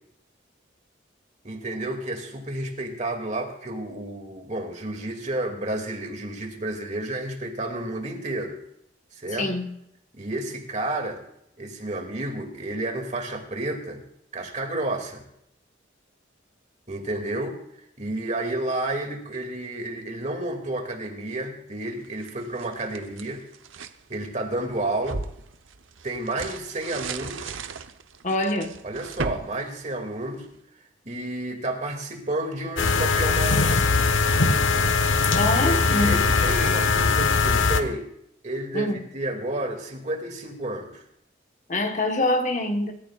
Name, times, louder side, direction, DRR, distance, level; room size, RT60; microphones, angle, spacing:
voice 1, 1.4-8.6 9.1-9.5 10.1-11.2 11.6-14.0 14.3-15.2 16.9-17.6 18.0-23.4 24.1-25.2 26.0-27.5 28.8-30.5 31.1-33.8 35.5-38.1 38.4-41.0, right 1 dB, 35° right, 2.4 m, -31 dB
sound 1, 22.0-24.0 24.5-30.6, right 4 dB, 90° right, 0.9 m, -37 dB
voice 2, 28.2-28.7 35.3-36.2 38.7-39.0 41.7-42.9, left 1 dB, 40° left, 1.3 m, -24 dB
sound 2, 32.8-37.8, left 4 dB, 85° left, 1.1 m, -21 dB
26.5 x 14.5 x 2.5 m
head